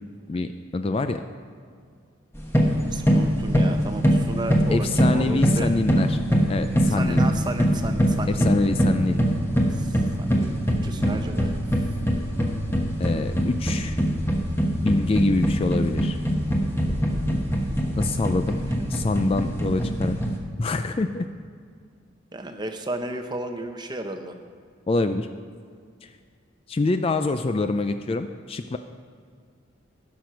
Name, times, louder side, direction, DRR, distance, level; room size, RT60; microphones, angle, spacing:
voice 1, 0.3-1.2 4.7-6.2 6.5-7.2 8.3-9.2 13.0-14.0 14.8-16.2 18.0-18.6 18.9-20.2 20.6-21.3 24.9-25.3 26.0-26.1 26.7-28.8, left 3 dB, 30° left, 8 dB, 0.3 m, -25 dB
sound 1, 2.3-20.4, equal, 10° left, 1.0 m, -23 dB
voice 2, 2.7-5.7 6.9-8.5 9.7-11.6 18.2-18.6 22.3-24.4, right 2 dB, 20° right, 6 dB, 0.7 m, -34 dB
15.0 x 6.1 x 5.7 m, 2.1 s
head